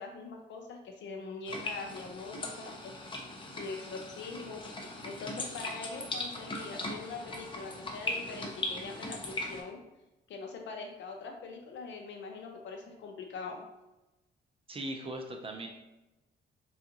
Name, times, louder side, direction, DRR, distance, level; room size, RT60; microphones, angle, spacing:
voice 1, 0.0-2.9 3.6-9.8 10.3-13.6, left 4 dB, 65° left, 2 dB, 0.7 m, -43 dB
sound 1, 1.5-9.6, left 2 dB, 25° left, 0.6 m, -39 dB
voice 2, 14.7-15.7, right 1 dB, 30° right, 2 dB, 0.5 m, -39 dB
3.6 x 2.4 x 2.8 m, 1.0 s
cardioid pair, 90°, 20 cm